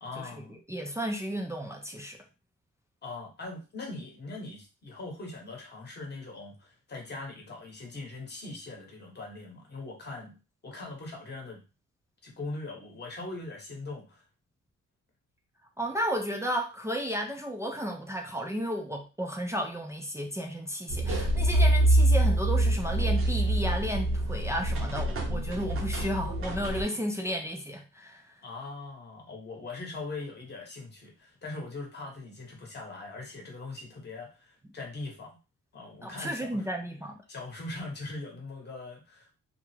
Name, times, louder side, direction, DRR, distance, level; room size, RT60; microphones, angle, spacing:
voice 1, 0.0-0.6 3.0-10.3 10.6-11.6 12.2-14.2 28.4-35.4 35.7-36.6 37.3-39.4, left 3 dB, 35° left, 0.9 m, -41 dB
voice 2, 0.7-2.2 15.8-28.3 36.0-37.1, equal, 10° right, 0.3 m, -33 dB
sound 1, 20.9-26.8, right 1 dB, 45° right, 0.6 m, -25 dB
2.3 x 2.0 x 3.1 m
cardioid pair, 115°, 31 cm